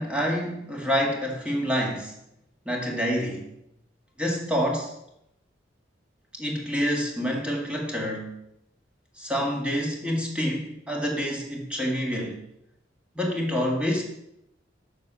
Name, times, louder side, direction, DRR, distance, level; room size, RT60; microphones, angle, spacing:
voice 1, 0.0-2.1 2.7-3.5 4.2-4.9 6.3-8.3 9.2-12.4 13.2-14.0, equal, 5° right, 0 dB, 1.8 m, -27 dB
6.9 x 6.8 x 6.1 m, 0.80 s
head